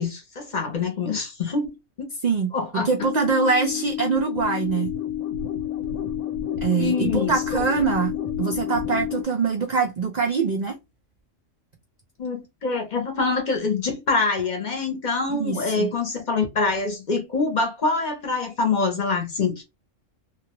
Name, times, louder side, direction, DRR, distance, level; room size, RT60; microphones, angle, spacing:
voice 1, 0.0-2.1 2.5-3.1 6.8-7.4 12.2-19.6, left 4 dB, 45° left, 0.7 m, -25 dB
voice 2, 2.8-4.9 6.6-10.8 15.3-15.9, right 5 dB, 70° right, 0.4 m, -24 dB
sound 1, 3.0-9.2, left 10 dB, 75° left, 0.9 m, -29 dB
2.4 x 2.2 x 2.8 m
omnidirectional pair, 1.3 m